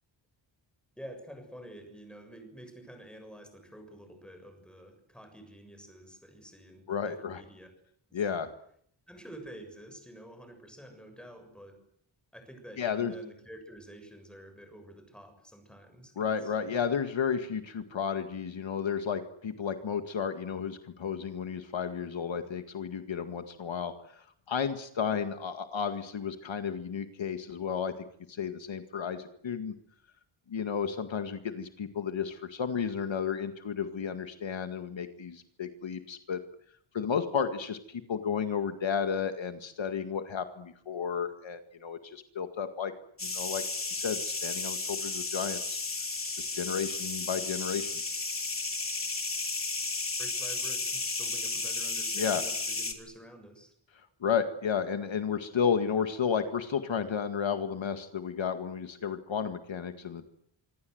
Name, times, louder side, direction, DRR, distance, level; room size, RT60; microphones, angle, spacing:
voice 1, 1.0-7.7 8.1-8.2 9.1-11.8 12.3-16.5 50.2-53.7, right 1 dB, ahead, 6 dB, 7.0 m, -49 dB
voice 2, 6.9-7.4 8.1-8.5 12.8-13.1 16.2-27.9 28.3-29.7 30.5-36.4 36.9-42.9 43.2-43.6 43.9-45.8 46.4-47.9 52.2-52.4 54.2-60.3, left 7 dB, 70° left, 8 dB, 2.0 m, -32 dB
sound 1, 43.2-52.9, left 3 dB, 25° left, 3.1 m, -33 dB
26.0 x 25.5 x 8.0 m, 0.68 s
wide cardioid pair, 170°, 48 cm